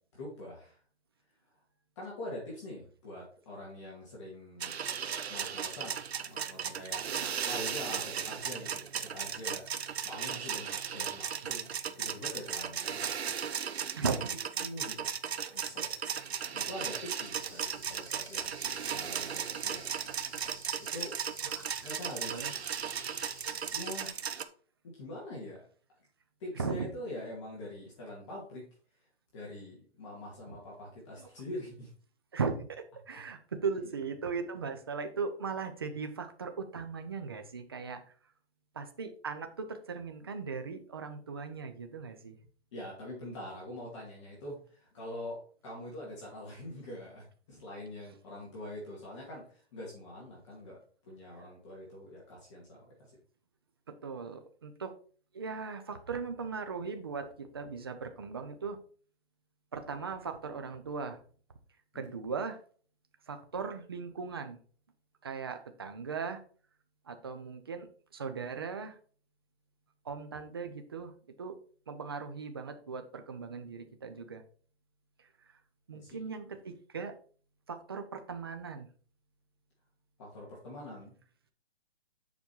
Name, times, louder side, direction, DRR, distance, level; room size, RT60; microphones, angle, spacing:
voice 1, 0.1-0.8 2.0-4.8 5.3-6.0 6.3-7.0 7.3-9.7 10.0-11.7 12.0-13.3 14.0-14.1 14.6-15.1 15.5-15.9 16.5-18.5 18.9-19.9 20.9-21.1 21.8-22.6 23.7-24.3 24.8-25.7 26.4-28.6 29.3-31.9 33.8-33.9 42.7-50.8 51.0-53.1 61.9-62.1 75.9-76.2 80.2-81.2, left 1 dB, 25° left, -4 dB, 2.3 m, -44 dB
sound 1, 4.6-24.4, right 7 dB, 70° right, 0.9 m, -36 dB
voice 2, 7.0-7.3 13.9-14.3 21.4-21.6 22.3-22.5 26.5-26.9 30.5-30.6 32.3-38.0 38.7-42.4 54.0-54.9 55.3-58.8 59.7-61.2 61.9-62.6 63.3-64.6 65.2-66.4 67.1-69.0 70.0-71.6 71.9-74.4 75.2-75.3 75.9-77.1 77.7-78.9, right 5 dB, 25° right, 7 dB, 0.6 m, -38 dB
sound 2, 17.2-24.1, right 1 dB, 5° right, 3.6 m, -52 dB
7.2 x 5.3 x 4.5 m, 0.43 s
hypercardioid pair, 170°, 33 cm